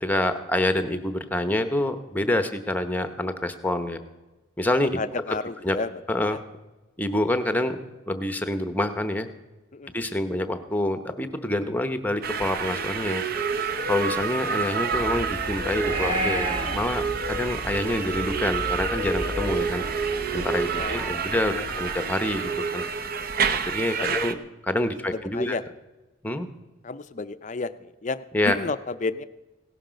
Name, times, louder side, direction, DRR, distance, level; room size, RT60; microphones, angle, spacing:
voice 1, 0.0-4.0 4.6-4.9 5.6-5.8 6.1-6.4 7.0-7.8 8.1-9.3 9.9-13.2 13.9-17.0 17.3-19.8 20.3-22.8 23.7-25.6 26.2-26.5 28.3-28.5, left 1 dB, 10° left, 9 dB, 0.9 m, -27 dB
voice 2, 4.9-6.0 6.3-6.4 9.7-9.9 20.7-21.6 24.0-24.2 25.1-25.6 26.8-29.3, left 3 dB, 35° left, 13 dB, 0.5 m, -32 dB
sound 1, 12.2-24.3, right 5 dB, 45° right, 0.8 m, -28 dB
sound 2, 14.9-22.6, right 1 dB, 25° right, 1.2 m, -33 dB
17.0 x 12.0 x 5.2 m, 1.1 s
head